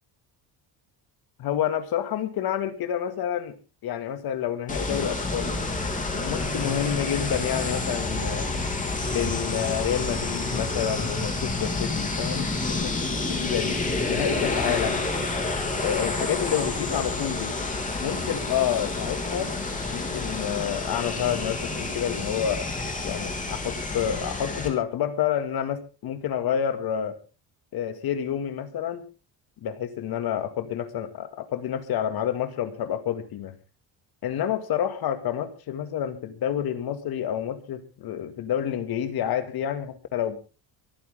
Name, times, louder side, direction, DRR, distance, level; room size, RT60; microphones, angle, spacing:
voice 1, 1.4-3.5 3.8-5.5 6.1-8.5 9.1-15.0 15.8-17.6 18.0-19.5 19.9-22.7 23.0-27.2 27.7-29.0 29.6-33.6 34.2-40.4, left 10 dB, 60° left, 9 dB, 2.3 m, -29 dB
sound 1, 4.7-24.7, left 3 dB, 20° left, 3.3 m, -29 dB
24.0 x 9.8 x 3.7 m, 0.33 s
cardioid pair, 155°, 42 cm